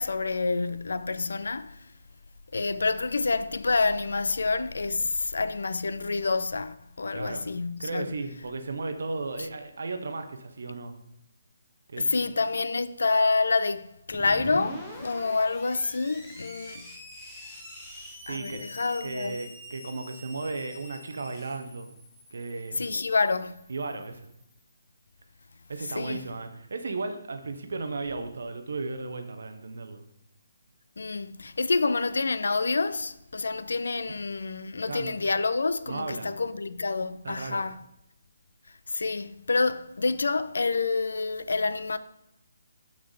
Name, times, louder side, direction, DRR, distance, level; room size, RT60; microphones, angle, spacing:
voice 1, 0.0-1.9 2.5-8.1 12.0-16.9 18.3-19.4 22.8-23.6 25.9-26.3 31.0-37.8 38.9-42.0, left 3 dB, 75° left, 0.4 m, -28 dB
voice 2, 7.1-7.4 7.8-10.9 11.9-12.2 18.2-18.6 19.0-21.9 22.3-22.9 23.7-24.2 25.7-30.0 34.9-35.1 35.9-36.3 37.2-37.6, right 3 dB, 65° right, 0.7 m, -35 dB
Screech, 14.1-24.6, equal, 10° left, 1.1 m, -45 dB
6.6 x 3.5 x 4.7 m
figure-of-eight pair, 145°, 0 cm